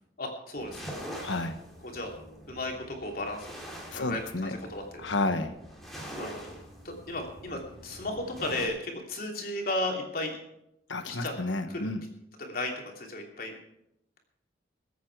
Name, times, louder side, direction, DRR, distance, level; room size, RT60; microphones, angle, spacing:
voice 1, 0.2-0.8 1.8-2.1 2.5-3.5 3.9-5.1 6.2-6.3 6.8-10.4 11.1-11.3 11.7-11.9 12.4-13.5, left 1 dB, 50° left, 1 dB, 3.0 m, -34 dB
sound 1, 0.6-8.7, equal, ahead, 2.9 m, -44 dB
voice 2, 1.2-1.6 3.9-4.6 5.0-5.5 10.9-12.0, left 2 dB, 90° left, 9 dB, 1.3 m, -31 dB
21.5 x 8.5 x 4.8 m, 0.84 s
head